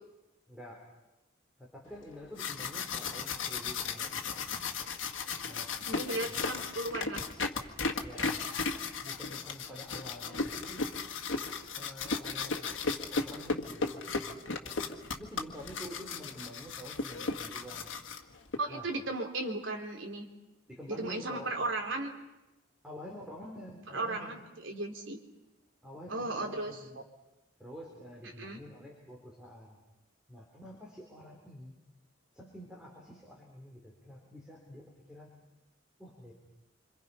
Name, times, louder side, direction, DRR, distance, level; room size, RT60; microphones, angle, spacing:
voice 1, 0.5-0.8 1.6-4.5 5.4-5.7 6.3-6.7 8.0-8.4 9.0-10.9 11.8-14.8 15.1-17.9 18.7-18.9 20.7-21.7 22.8-24.4 25.8-27.0 27.6-29.8 30.3-31.7 32.3-35.4 36.0-36.3, equal, 5° right, -2 dB, 4.0 m, -48 dB
sound 1, 2.1-18.6, left 4 dB, 85° left, 1.8 m, -36 dB
voice 2, 5.9-7.3 18.6-20.3 20.9-22.1 23.9-25.2 26.1-26.8 28.4-28.6, right 2 dB, 85° right, 3 dB, 3.4 m, -35 dB
27.0 x 26.5 x 5.7 m, 1.0 s
head